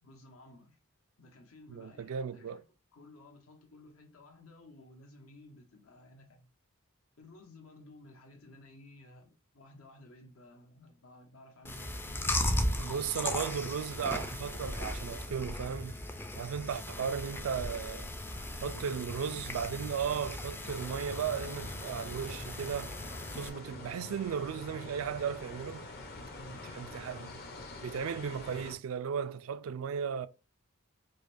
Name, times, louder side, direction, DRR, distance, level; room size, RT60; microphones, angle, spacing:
voice 1, 0.0-0.8 1.2-2.6 2.9-6.5 7.2-12.3 18.3-19.1 26.3-26.9, left 2 dB, 80° left, 1.1 m, -55 dB
voice 2, 1.7-2.6 12.8-16.0 16.4-18.1 18.6-22.9 23.3-25.9 26.5-27.4 27.8-30.3, right 7 dB, 70° right, 0.3 m, -36 dB
Chewing mastication, 11.7-23.5, left 1 dB, 10° left, 0.4 m, -37 dB
sound 1, 20.6-28.8, left 2 dB, 45° left, 0.8 m, -46 dB
4.9 x 2.2 x 2.6 m
head